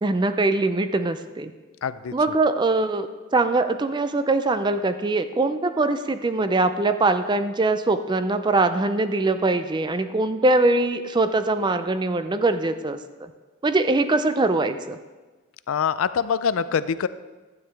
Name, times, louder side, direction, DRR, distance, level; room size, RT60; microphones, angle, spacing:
voice 1, 0.0-1.5 2.1-3.1 3.3-13.3 13.6-15.0, right 2 dB, 20° right, 10 dB, 0.4 m, -22 dB
voice 2, 1.8-2.1 15.7-17.1, left 7 dB, 75° left, 15 dB, 0.4 m, -24 dB
12.0 x 9.3 x 3.4 m, 1.3 s
head